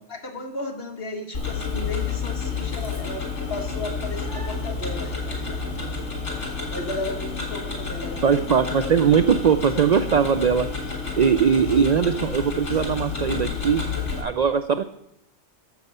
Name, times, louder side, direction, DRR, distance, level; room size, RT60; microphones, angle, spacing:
voice 1, 0.1-5.7 6.4-6.5 6.7-8.5, left 2 dB, 55° left, 3 dB, 1.7 m, -34 dB
Tick-tock, 1.3-14.2, left 5 dB, 75° left, 2.7 m, -30 dB
voice 2, 8.2-13.8 14.2-14.8, right 7 dB, 65° right, 10 dB, 0.4 m, -20 dB
14.0 x 6.8 x 5.4 m, 0.78 s
omnidirectional pair, 1.3 m